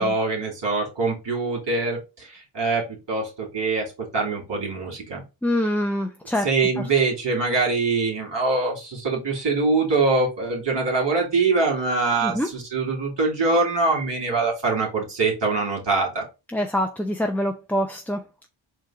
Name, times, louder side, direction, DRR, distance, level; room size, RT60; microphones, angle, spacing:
voice 1, 0.0-5.2 6.4-16.2, right 3 dB, 55° right, 2.5 m, -23 dB
voice 2, 5.4-6.5 12.2-12.5 16.5-18.5, left 1 dB, 5° left, 0.5 m, -25 dB
4.5 x 2.3 x 4.6 m
cardioid pair, 45°, 49 cm